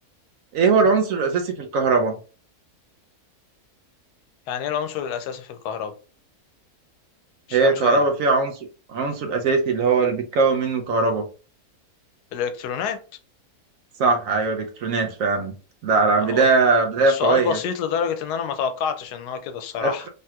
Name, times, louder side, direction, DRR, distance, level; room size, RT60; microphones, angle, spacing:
voice 1, 0.5-2.2 7.5-8.6 8.9-11.2 14.0-15.5 15.8-17.6 19.8-20.1, right 4 dB, 70° right, 0.9 m, -20 dB
voice 2, 4.5-5.9 7.5-8.0 12.3-13.0 16.2-16.5 17.1-20.1, left 7 dB, 90° left, 1.1 m, -27 dB
3.2 x 2.9 x 2.3 m
omnidirectional pair, 1.6 m